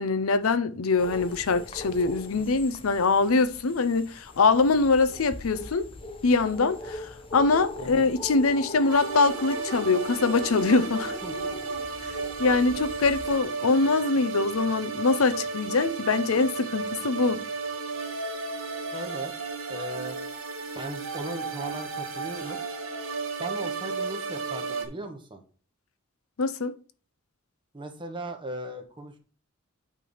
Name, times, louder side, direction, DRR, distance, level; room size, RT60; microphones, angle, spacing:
voice 1, 0.0-5.9 6.2-11.2 12.0-17.4 26.4-26.7, left 3 dB, 85° left, 0.6 m, -24 dB
sound 1, 1.0-13.4, left 2 dB, 25° left, 0.8 m, -41 dB
voice 2, 7.8-8.1 11.2-11.6 18.9-19.3 19.7-20.2 20.7-22.6 23.4-25.4 27.7-29.2, right 2 dB, 25° right, 1.2 m, -37 dB
sound 2, 8.9-24.8, right 4 dB, 85° right, 1.8 m, -33 dB
8.6 x 3.4 x 5.5 m
head